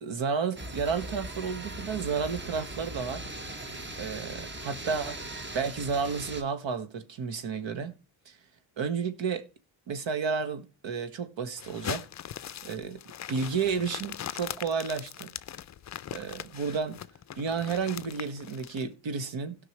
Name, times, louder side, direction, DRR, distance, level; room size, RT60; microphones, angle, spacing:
voice 1, 0.0-3.2 4.0-5.2 5.5-7.9 8.2-8.4 8.8-9.4 9.9-12.1 12.6-13.0 13.3-15.3 16.1-17.0 17.4-19.6, right 5 dB, 70° right, 1.6 m, -31 dB
sound 1, 0.6-6.4, right 1 dB, 25° right, 1.3 m, -39 dB
sound 2, 11.6-18.8, left 10 dB, 40° left, 0.4 m, -40 dB
17.0 x 5.9 x 3.1 m
cardioid pair, 90°, 47 cm